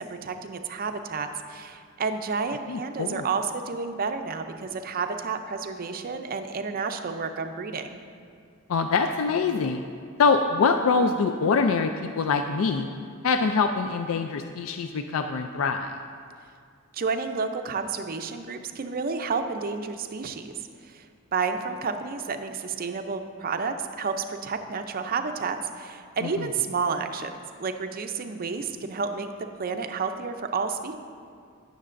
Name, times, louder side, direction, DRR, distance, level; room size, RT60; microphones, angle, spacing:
voice 1, 0.0-8.0 16.9-20.5 20.8-21.1 21.3-29.3 29.6-30.9, right 5 dB, 45° right, 7 dB, 0.5 m, -30 dB
voice 2, 2.7-3.3 8.7-9.8 10.2-12.9 13.2-15.9 26.2-26.5, left 4 dB, 70° left, 6 dB, 0.4 m, -24 dB
16.5 x 6.5 x 2.5 m, 2.2 s
head